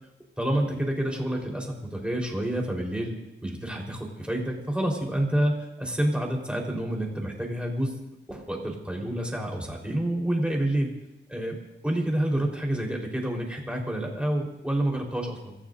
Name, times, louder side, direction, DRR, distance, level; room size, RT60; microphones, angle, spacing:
voice 1, 0.4-3.2 3.4-7.9 8.3-10.9 11.3-11.6 11.8-15.6, right 1 dB, 5° right, 0 dB, 4.1 m, -28 dB
27.5 x 15.0 x 2.6 m, 0.91 s
wide cardioid pair, 85°, 20 cm